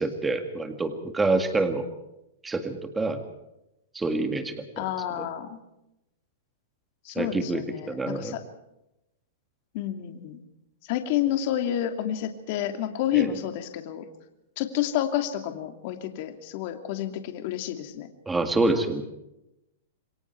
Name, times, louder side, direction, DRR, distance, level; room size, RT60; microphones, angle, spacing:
voice 1, 0.0-1.9 2.4-3.2 3.9-4.9 5.2-5.3 7.2-8.3 13.1-13.3 18.3-19.0, right 2 dB, 10° right, 7 dB, 2.0 m, -27 dB
voice 2, 4.8-5.6 7.0-8.4 9.7-10.4 10.9-14.0 14.6-18.1, left 11 dB, 40° left, 6 dB, 2.7 m, -29 dB
28.0 x 22.5 x 4.7 m, 0.89 s
supercardioid pair, 165°, 0 cm